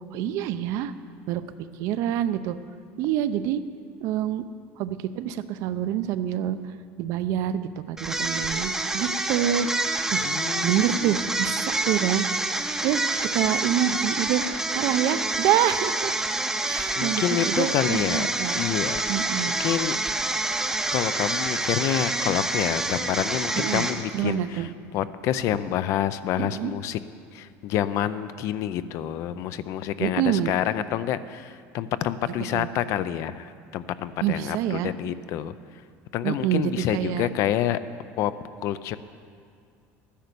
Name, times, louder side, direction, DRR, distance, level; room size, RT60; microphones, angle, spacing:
voice 1, 0.1-0.9 1.3-1.4 1.8-2.6 3.0-3.6 4.0-4.4 4.8-6.6 7.0-9.7 10.1-10.3 10.6-12.3 12.8-13.0 13.3-14.4 14.7-16.1 16.6-18.6 19.1-19.6 23.6-23.9 24.1-24.7 26.4-26.7 30.0-30.5 32.5-32.7 34.2-34.9 36.2-37.3, right 11 dB, 65° right, 12 dB, 0.6 m, -26 dB
sound 1, 8.0-24.3, right 2 dB, 10° right, 0.7 m, -27 dB
voice 2, 10.2-11.1 17.0-19.0 19.6-20.0 20.9-24.7 24.9-27.0 27.3-35.5 36.1-37.8 38.2-38.3 38.6-39.0, left 11 dB, 55° left, 14 dB, 0.5 m, -28 dB
12.5 x 10.0 x 6.8 m, 2.4 s
cardioid pair, 145°, 6 cm